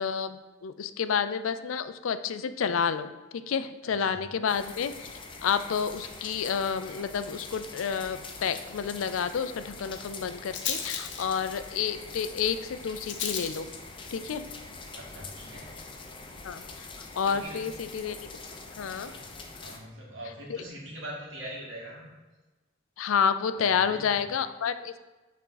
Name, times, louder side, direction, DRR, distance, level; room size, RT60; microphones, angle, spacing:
voice 1, 0.0-5.1 5.4-13.7 14.1-14.4 16.4-16.6 17.2-18.2 18.8-19.1 20.5-20.6 23.0-25.0, left 7 dB, 85° left, 12 dB, 0.4 m, -30 dB
voice 2, 3.8-4.2 14.9-15.8 17.2-17.7 19.0-19.2 19.6-22.1 23.5-24.2, right 1 dB, 70° right, -4 dB, 2.0 m, -42 dB
sound 1, 4.5-19.8, left 3 dB, 25° left, 0.6 m, -44 dB
Rattle, 7.5-17.4, left 7 dB, 60° left, 0.8 m, -41 dB
8.1 x 3.7 x 3.9 m, 1.2 s
head